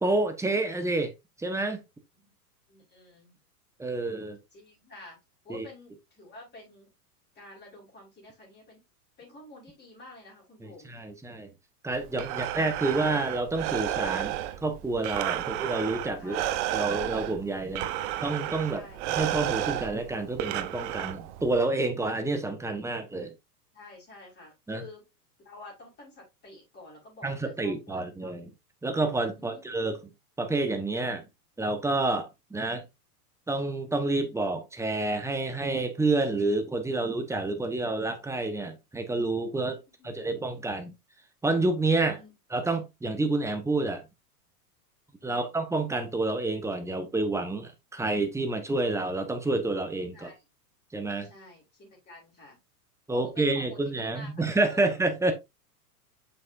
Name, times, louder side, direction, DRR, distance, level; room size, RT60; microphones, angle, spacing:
voice 1, 0.0-1.1 1.4-1.8 3.8-4.4 5.5-5.6 10.6-11.5 11.8-16.4 16.7-17.9 18.2-18.8 19.1-23.3 24.7-24.8 27.2-28.5 28.8-30.0 30.4-31.3 31.6-32.8 33.5-39.8 40.0-40.9 41.4-42.2 42.5-44.0 45.2-50.3 50.9-51.3 53.1-55.3, right 2 dB, 5° right, 1.1 m, -29 dB
voice 2, 2.7-3.4 4.5-5.2 5.4-6.9 7.3-8.8 9.2-10.9 12.3-12.6 15.4-15.6 16.2-16.6 18.7-19.0 23.7-25.0 25.4-28.3 29.3-29.6 39.6-40.1 42.2-42.3 45.2-45.6 50.1-50.4 51.2-52.6 53.1-54.3 54.7-54.8, left 2 dB, 20° left, 4.6 m, -49 dB
Breathing, 11.9-21.6, right 13 dB, 50° right, 0.9 m, -32 dB
7.3 x 6.0 x 2.6 m
hypercardioid pair, 115°, 48 cm